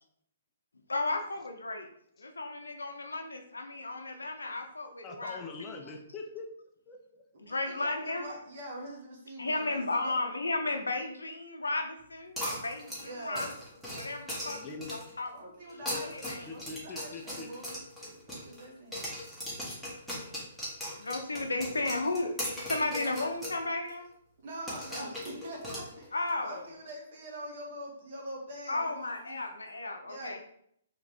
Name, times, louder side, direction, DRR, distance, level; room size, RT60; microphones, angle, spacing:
voice 1, 0.9-1.9 2.2-5.8 7.4-8.2 9.4-13.5 13.9-14.6 14.9-15.3 16.0-16.7 20.9-24.1 26.1-26.7 28.7-30.4, left 2 dB, 75° left, 4 dB, 0.7 m, -34 dB
voice 2, 5.0-6.5 6.9-7.2 14.5-15.0 15.9-16.0 16.5-17.5, left 4 dB, 20° left, 2 dB, 0.6 m, -43 dB
voice 3, 7.4-10.1 13.0-13.5 15.3-17.8 18.3-19.1 22.9-23.3 24.4-29.4 30.0-30.4, right 1 dB, 50° right, -1 dB, 1.5 m, -44 dB
sound 1, 12.4-15.2 15.7-18.7 18.9-23.6 23.9-24.0 24.7-26.3, left 1 dB, ahead, 1.7 m, -39 dB
4.7 x 3.2 x 3.6 m, 0.69 s
figure-of-eight pair, 120°, 0 cm